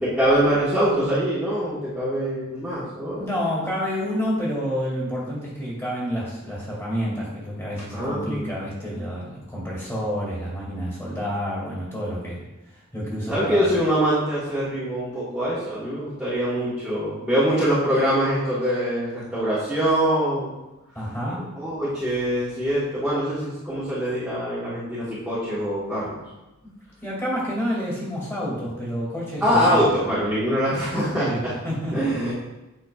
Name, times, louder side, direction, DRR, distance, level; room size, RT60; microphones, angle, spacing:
voice 1, 0.0-3.2 7.9-8.5 13.3-20.5 21.5-26.2 29.4-31.3 31.9-32.3, equal, 5° right, -13 dB, 1.5 m, -23 dB
voice 2, 3.2-12.4 12.7-13.7 20.9-21.6 27.0-29.9 31.1-32.1, equal, 10° left, -6 dB, 2.3 m, -29 dB
8.3 x 5.8 x 2.4 m, 1.0 s
head